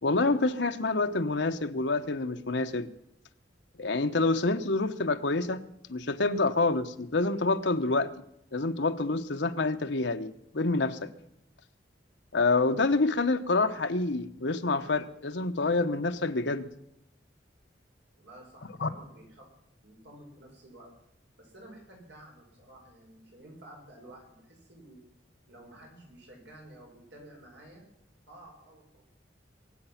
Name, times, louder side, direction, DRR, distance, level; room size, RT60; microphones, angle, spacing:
voice 1, 0.0-2.9 3.8-5.6 5.9-8.2 8.5-11.1 12.3-16.7 18.8-18.9, left 3 dB, 75° left, 7 dB, 1.0 m, -27 dB
voice 2, 18.2-19.4 19.8-20.9 21.4-25.0 25.5-27.8 28.3-28.8, right 1 dB, 70° right, 0 dB, 4.7 m, -51 dB
24.0 x 8.0 x 5.8 m, 0.81 s
head